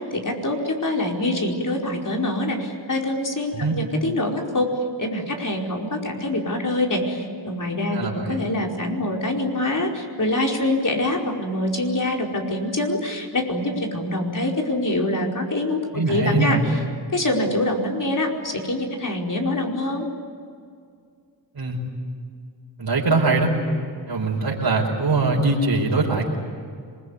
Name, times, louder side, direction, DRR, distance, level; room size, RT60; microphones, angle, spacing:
voice 1, 0.0-4.7 5.0-15.8 16.1-16.8 17.1-20.1, left 1 dB, 45° left, 1 dB, 5.0 m, -25 dB
voice 2, 7.9-8.4 15.9-16.6 21.5-21.8 22.8-23.5 24.1-26.3, right 3 dB, 60° right, -5 dB, 5.1 m, -22 dB
26.5 x 21.5 x 9.8 m, 2.2 s
cardioid pair, 65°, 44 cm